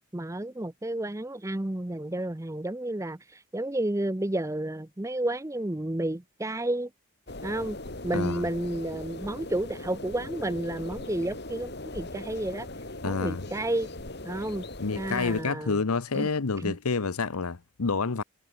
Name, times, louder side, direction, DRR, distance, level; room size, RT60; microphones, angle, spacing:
voice 1, 0.1-6.9 7.4-7.8 8.0-12.7 13.0-13.9 14.2-14.6 14.9-15.8 16.1-16.3 16.6-16.8, right 1 dB, 15° right, 0.6 m, -31 dB
sound 1, 7.3-15.4, left 2 dB, 50° left, 2.6 m, -40 dB
voice 2, 8.1-8.5 13.0-13.4 14.8-18.2, left 4 dB, 85° left, 0.9 m, -28 dB
head